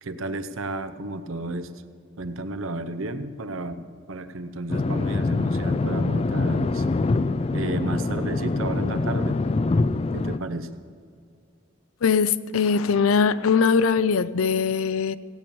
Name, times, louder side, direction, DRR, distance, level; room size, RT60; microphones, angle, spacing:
voice 1, 0.0-1.7 2.2-6.9 7.5-9.4 10.1-10.7, right 2 dB, 80° right, 11 dB, 0.8 m, -32 dB
sound 1, 4.7-10.4, left 3 dB, 30° left, 0.3 m, -24 dB
voice 2, 12.0-15.2, left 5 dB, 85° left, 16 dB, 0.5 m, -21 dB
16.5 x 8.5 x 7.0 m, 2.2 s
head